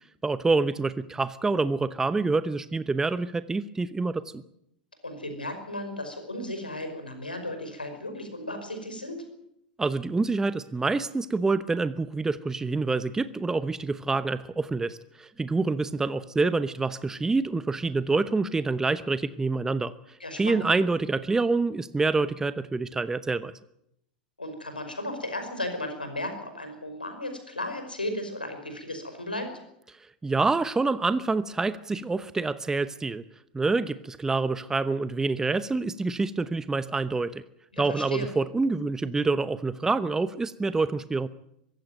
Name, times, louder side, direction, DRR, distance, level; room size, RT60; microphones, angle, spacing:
voice 1, 0.2-4.4 9.8-23.5 30.2-33.2 33.5-37.4 37.8-41.3, right 3 dB, 10° right, 14 dB, 0.9 m, -27 dB
voice 2, 5.0-9.2 20.2-20.7 24.4-29.5 37.7-38.3, left 1 dB, 85° left, 7 dB, 5.4 m, -35 dB
23.5 x 16.0 x 9.2 m, 0.78 s
figure-of-eight pair, 85°, 5 cm